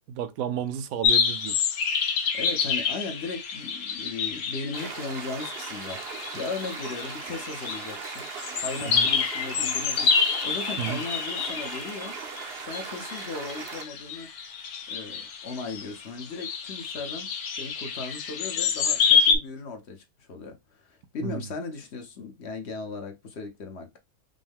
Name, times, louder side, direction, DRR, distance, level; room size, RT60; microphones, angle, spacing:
voice 1, 0.1-1.7 8.9-9.1 10.8-11.0 21.2-21.5, right 9 dB, 75° right, 1.0 m, -32 dB
sound 1, 1.0-19.3, left 6 dB, 85° left, 1.3 m, -28 dB
voice 2, 2.3-8.2 8.5-12.2 12.6-14.3 14.9-24.0, left 3 dB, 55° left, 0.9 m, -37 dB
sound 2, 4.7-13.9, right 6 dB, 55° right, 0.8 m, -39 dB
5.3 x 2.1 x 3.5 m
omnidirectional pair, 1.6 m